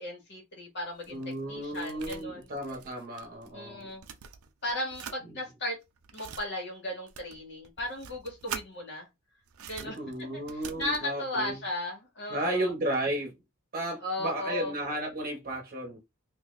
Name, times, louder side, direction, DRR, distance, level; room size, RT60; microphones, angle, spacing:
voice 1, 0.0-1.2 1.5-2.5 3.5-4.0 4.6-5.8 6.1-9.1 9.6-10.0 10.3-12.7 14.0-14.7, left 1 dB, 55° left, 1.8 m, -36 dB
sound 1, 0.8-3.5 3.8-5.2 5.8-6.4 7.1-8.7 9.5-11.1, right 7 dB, 75° right, 0.5 m, -44 dB
voice 2, 1.1-3.9 9.8-11.6 12.3-13.4 13.7-16.0, right 1 dB, 45° right, 0.9 m, -33 dB
3.9 x 2.7 x 2.5 m
head